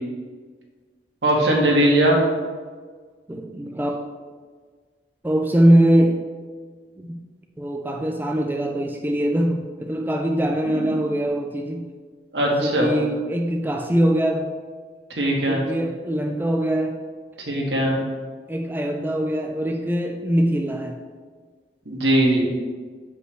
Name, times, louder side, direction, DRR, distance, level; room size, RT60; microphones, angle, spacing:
voice 1, 1.2-2.1 10.6-10.9 12.3-12.9 15.1-15.6 17.5-17.9 21.8-22.4, right 1 dB, 90° right, -2 dB, 1.6 m, -20 dB
voice 2, 3.3-4.0 5.2-6.2 7.0-7.2 7.6-11.9 12.4-14.5 15.4-17.0 18.5-21.0, right 1 dB, 10° right, 2 dB, 0.4 m, -22 dB
7.7 x 5.3 x 3.2 m, 1.5 s
head